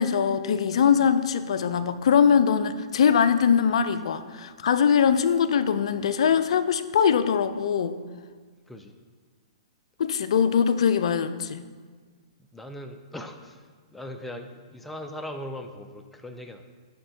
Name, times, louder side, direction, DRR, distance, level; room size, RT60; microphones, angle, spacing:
voice 1, 0.0-8.0 10.0-11.6, left 7 dB, 70° left, 13 dB, 0.4 m, -22 dB
voice 2, 12.5-13.7 13.9-16.6, left 1 dB, 5° left, 5 dB, 0.4 m, -39 dB
9.5 x 4.2 x 2.7 m, 1.5 s
hypercardioid pair, 130°, 3 cm